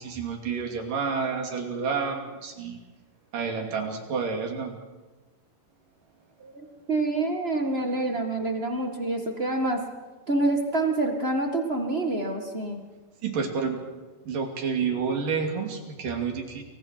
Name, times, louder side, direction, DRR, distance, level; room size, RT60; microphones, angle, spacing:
voice 1, 0.0-2.8 3.3-4.8 13.2-13.8 14.2-16.6, right 5 dB, 60° right, 3 dB, 4.2 m, -29 dB
voice 2, 6.4-9.8 10.3-12.8, right 2 dB, 45° right, 3 dB, 0.8 m, -27 dB
29.5 x 24.0 x 4.6 m, 1.2 s
omnidirectional pair, 4.4 m